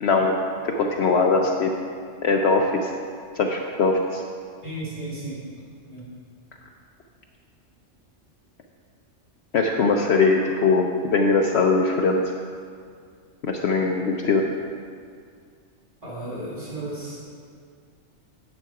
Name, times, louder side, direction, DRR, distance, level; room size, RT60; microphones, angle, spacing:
voice 1, 0.0-1.7 2.2-2.9 3.4-4.2 9.5-12.2 13.4-14.5, left 3 dB, 60° left, 2 dB, 0.9 m, -21 dB
voice 2, 4.6-5.4 5.9-6.0 10.4-10.5 16.0-17.2, right 1 dB, 25° right, -8 dB, 2.9 m, -34 dB
9.7 x 8.3 x 4.7 m, 2.1 s
omnidirectional pair, 1.3 m